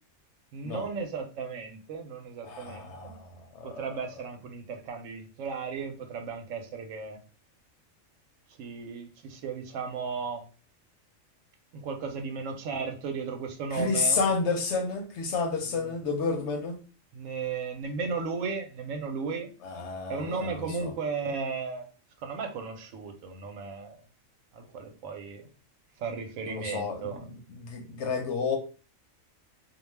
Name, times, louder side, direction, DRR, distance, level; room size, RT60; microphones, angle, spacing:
voice 1, 0.5-3.2 3.6-7.2 8.6-10.5 11.7-14.2 17.1-19.5 20.1-21.9 22.2-24.0 24.5-25.5 26.0-27.3, right 5 dB, 75° right, 0.9 m, -35 dB
voice 2, 2.4-3.8 13.7-16.8 19.6-20.9 26.5-28.6, left 4 dB, 65° left, 0.8 m, -30 dB
2.3 x 2.2 x 3.1 m
omnidirectional pair, 1.4 m